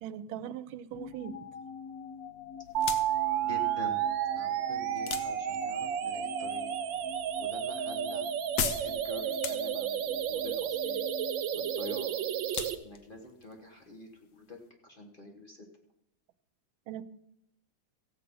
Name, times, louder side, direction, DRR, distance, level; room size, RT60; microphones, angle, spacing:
voice 1, 0.0-1.3 16.9-17.0, right 10 dB, 90° right, 15 dB, 1.5 m, -40 dB
sound 1, 0.9-13.0, left 7 dB, 75° left, 0.8 m, -46 dB
sound 2, 2.6-14.7, left 7 dB, 60° left, 1.2 m, -41 dB
sound 3, 2.7-12.7, right 10 dB, 70° right, 1.4 m, -32 dB
voice 2, 3.4-4.0 4.3-6.7 7.4-8.3 8.8-11.1 11.5-12.2 12.8-14.6 14.8-15.7, left 2 dB, 30° left, 2 dB, 1.2 m, -46 dB
15.5 x 7.7 x 5.3 m, 0.82 s
omnidirectional pair, 2.2 m